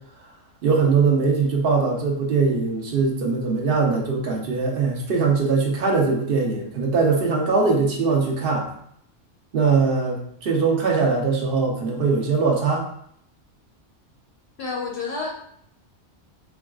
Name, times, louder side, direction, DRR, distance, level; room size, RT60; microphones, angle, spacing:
voice 1, 0.6-8.7 9.5-12.9, right 4 dB, 55° right, -1 dB, 0.9 m, -21 dB
voice 2, 14.6-15.3, left 4 dB, 65° left, 0 dB, 0.8 m, -29 dB
4.4 x 2.4 x 2.3 m, 0.68 s
omnidirectional pair, 1.2 m